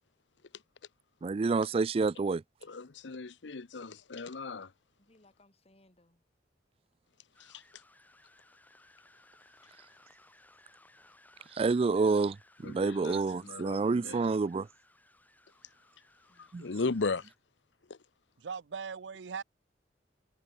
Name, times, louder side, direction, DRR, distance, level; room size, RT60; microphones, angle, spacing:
voice 1, 1.2-2.4 11.5-12.4 12.6-14.7 16.5-16.7, right 4 dB, 30° right, 0.3 m, -28 dB
voice 2, 2.7-4.7 12.6-14.2 16.6-17.2, left 3 dB, 80° left, 0.8 m, -36 dB
voice 3, 5.0-6.2 16.3-17.0, left 1 dB, 35° left, 3.4 m, -65 dB
sound 1, 7.3-17.4, left 2 dB, 10° left, 7.8 m, -62 dB
voice 4, 18.4-19.4, right 6 dB, 85° right, 0.6 m, -39 dB
head